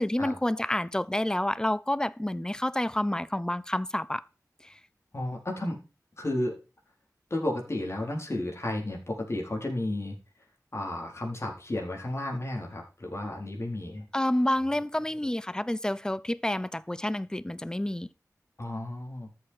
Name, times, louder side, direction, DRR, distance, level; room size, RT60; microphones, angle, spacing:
voice 1, 0.0-4.2 4.6-4.7 14.1-18.1, left 1 dB, 10° left, 0.7 m, -29 dB
voice 2, 5.1-5.8 6.2-6.5 7.3-10.2 10.7-14.0 18.6-19.3, left 1 dB, 45° left, 4.2 m, -32 dB
13.5 x 7.6 x 4.7 m
wide cardioid pair, 70°, 6 cm